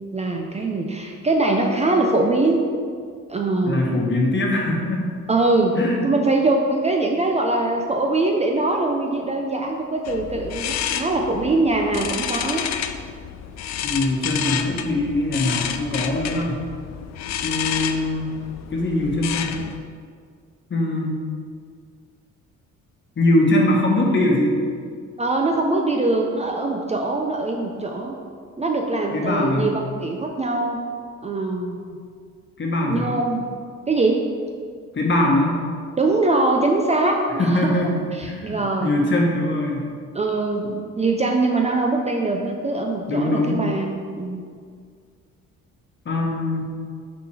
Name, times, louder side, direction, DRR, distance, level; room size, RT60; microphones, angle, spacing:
voice 1, 0.1-2.6 3.3-3.9 5.3-5.8 6.0-12.6 25.2-28.2 28.6-30.8 31.2-32.0 32.9-33.5 33.9-34.3 36.0-37.8 38.1-38.9 40.1-40.7 41.0-44.5, right 2 dB, 20° right, 1 dB, 0.5 m, -22 dB
voice 2, 3.7-5.0 5.8-6.1 13.8-16.6 17.4-18.2 18.7-19.6 20.7-21.1 23.2-24.6 29.1-29.7 32.6-33.2 34.9-35.5 37.4-39.9 40.6-40.7 43.1-43.6 46.0-46.6, left 1 dB, 40° left, -1 dB, 1.3 m, -22 dB
sound 1, 10.0-19.8, left 9 dB, 65° left, 0.4 m, -30 dB
5.8 x 3.8 x 4.8 m, 2.1 s
cardioid pair, 90°, 30 cm